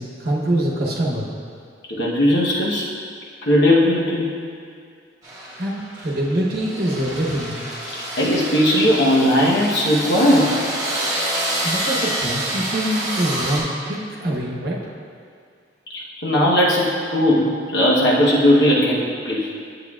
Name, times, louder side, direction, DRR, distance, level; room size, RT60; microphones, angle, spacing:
voice 1, 0.0-1.3 5.6-7.6 11.6-14.8, right 1 dB, 60° right, -5 dB, 0.9 m, -24 dB
voice 2, 1.9-2.9 3.4-4.3 8.2-10.5 15.9-19.5, left 1 dB, 70° left, -5 dB, 1.0 m, -18 dB
sound 1, 5.2-13.6, right 1 dB, 20° right, 1.4 m, -27 dB
9.7 x 7.7 x 2.4 m, 2.2 s
head